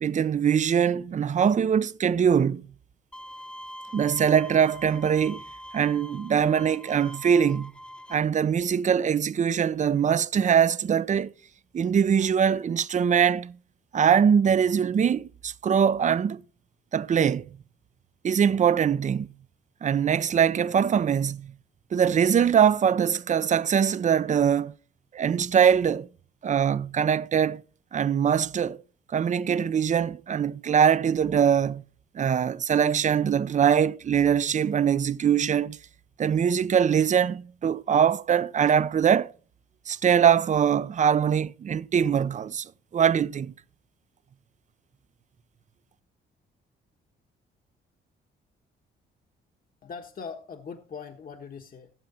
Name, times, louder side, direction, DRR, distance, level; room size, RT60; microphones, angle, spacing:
voice 1, 0.0-2.7 3.9-5.4 5.7-7.7 8.1-11.3 11.7-13.6 13.9-16.4 16.9-17.5 18.2-19.3 19.8-21.5 21.9-24.7 25.1-26.1 26.4-27.6 27.9-28.8 29.1-31.8 32.1-35.8 36.2-39.3 39.9-43.5, right 8 dB, 40° right, 0.5 m, -22 dB
Bowed string instrument, 3.1-8.1, equal, 5° left, 0.9 m, -44 dB
voice 2, 49.8-51.9, left 5 dB, 45° left, 1.3 m, -41 dB
16.0 x 7.4 x 4.3 m
cardioid pair, 90°, 20 cm